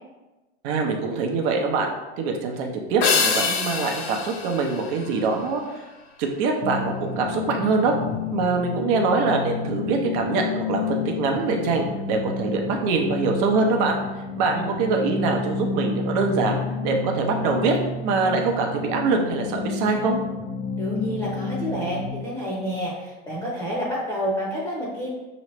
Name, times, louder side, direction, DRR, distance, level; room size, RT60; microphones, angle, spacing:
voice 1, 0.6-5.6 6.2-7.9 8.3-14.0 14.3-17.8 18.0-20.2, right 4 dB, 50° right, 2 dB, 0.9 m, -24 dB
sound 1, 3.0-5.6, left 5 dB, 75° left, 1.2 m, -25 dB
sound 2, 6.6-22.1, left 5 dB, 25° left, 0.4 m, -30 dB
voice 2, 20.8-25.1, equal, 5° left, -6 dB, 0.8 m, -29 dB
5.4 x 3.1 x 3.1 m, 1.1 s
supercardioid pair, 140°, 32 cm